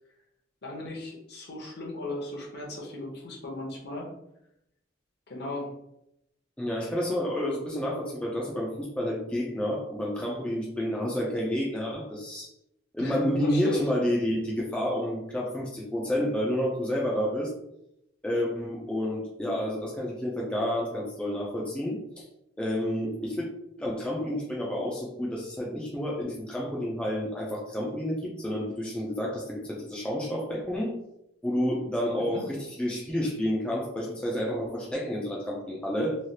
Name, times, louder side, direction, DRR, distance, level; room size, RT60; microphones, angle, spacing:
voice 1, 0.6-4.1 5.3-5.7 13.0-13.9 32.2-32.4, left 2 dB, 55° left, -1 dB, 0.8 m, -37 dB
voice 2, 6.6-12.5 12.9-17.5 18.2-22.2 22.6-23.5 23.8-30.9 31.4-36.2, equal, 5° left, -4 dB, 0.4 m, -30 dB
3.1 x 2.3 x 2.7 m, 0.82 s
head